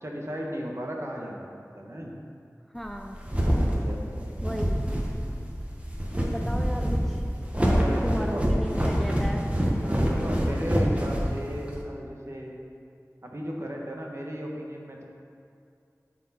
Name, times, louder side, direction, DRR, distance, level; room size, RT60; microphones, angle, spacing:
voice 1, 0.0-2.1 3.5-4.0 7.7-8.5 9.7-12.5 13.2-15.0, equal, 50° right, -1 dB, 1.3 m, -35 dB
voice 2, 2.7-3.2 4.4-4.8 6.3-7.2 8.0-9.4, equal, 5° left, 3 dB, 0.5 m, -35 dB
sound 1, 2.9-11.8, equal, 20° right, 1.3 m, -26 dB
12.0 x 4.6 x 4.3 m, 2.5 s
wide cardioid pair, 40°, 6 cm